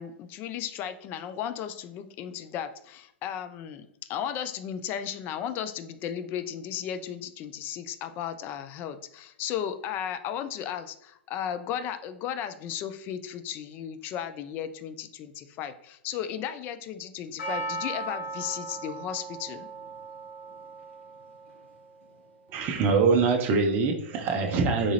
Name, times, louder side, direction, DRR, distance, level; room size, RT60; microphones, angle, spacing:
voice 1, 0.0-19.7, left 9 dB, 30° left, 10 dB, 0.3 m, -35 dB
Percussion, 17.4-21.8 22.0-22.1, right 2 dB, 70° left, 1.0 m, -37 dB
voice 2, 22.5-24.9, right 4 dB, 30° right, 3 dB, 0.5 m, -24 dB
3.8 x 2.4 x 2.9 m, 0.73 s
figure-of-eight pair, 100°, 7 cm